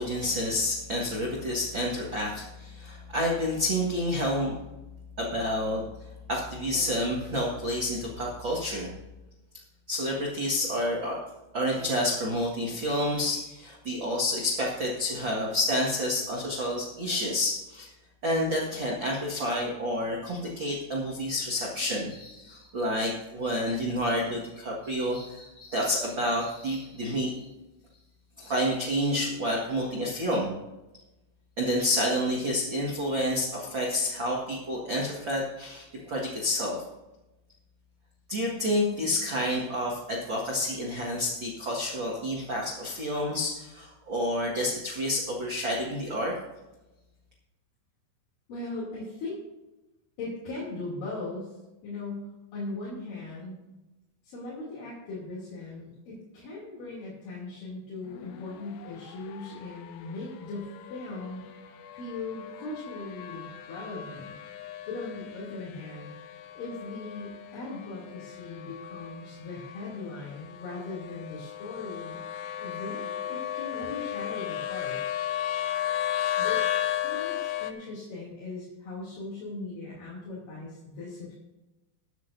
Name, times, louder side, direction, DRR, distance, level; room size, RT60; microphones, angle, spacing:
voice 1, 0.0-4.5 5.2-5.8 6.3-8.9 9.9-11.2 11.5-17.9 18.2-27.3 28.4-30.5 31.6-36.8 38.3-46.3, left 1 dB, 75° right, -3 dB, 1.1 m, -29 dB
voice 2, 48.5-49.4 50.2-51.5 51.8-53.5 54.2-61.4 61.9-64.3 64.9-66.1 66.5-72.2 72.6-75.0 76.4-76.6 77.0-81.3, left 3 dB, 50° left, -7 dB, 4.2 m, -39 dB
sound 1, 58.0-77.7, left 11 dB, 90° left, 3.1 m, -35 dB
21.0 x 9.5 x 2.7 m, 1.0 s
omnidirectional pair, 5.2 m